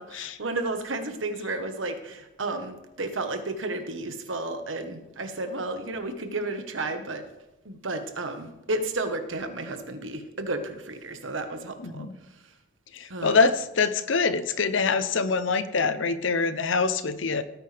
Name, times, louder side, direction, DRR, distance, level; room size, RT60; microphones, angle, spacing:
voice 1, 0.0-7.2 7.6-12.1 13.1-13.4, right 2 dB, 85° right, 7 dB, 1.4 m, -32 dB
voice 2, 11.8-12.2 12.9-17.4, left 4 dB, 80° left, 13 dB, 0.7 m, -24 dB
18.5 x 9.2 x 3.5 m, 0.96 s
head